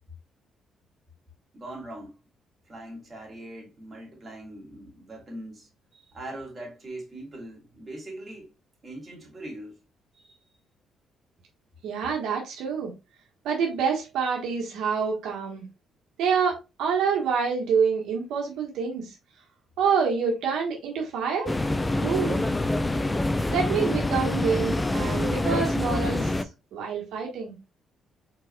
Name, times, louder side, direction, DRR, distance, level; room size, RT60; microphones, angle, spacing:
voice 1, 1.5-2.2 2.7-8.5 8.8-9.8 10.1-10.4, right 1 dB, 30° right, 2.5 m, -41 dB
voice 2, 11.8-12.9 13.4-15.6 16.2-19.1 19.8-21.5 22.0-22.4 23.5-27.6, right 6 dB, 85° right, 1.2 m, -27 dB
sound 1, 21.5-26.4, left 2 dB, 15° left, 0.4 m, -26 dB
4.8 x 4.6 x 2.2 m
cardioid pair, 90°, 0 cm